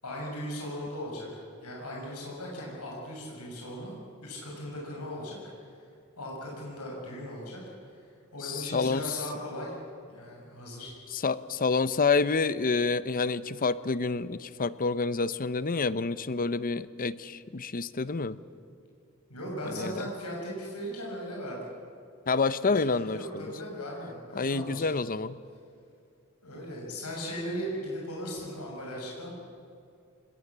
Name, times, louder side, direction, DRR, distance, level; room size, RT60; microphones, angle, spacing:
voice 1, 0.0-3.9 4.2-5.8 6.2-9.7 10.1-10.9 19.3-21.7 22.9-24.8 26.4-29.3, equal, 90° left, -2 dB, 6.7 m, -38 dB
voice 2, 8.4-9.1 11.1-18.4 19.7-19.9 22.3-23.5 24.4-25.4, left 4 dB, 40° left, 15 dB, 0.7 m, -28 dB
26.0 x 21.0 x 7.5 m, 2.5 s
head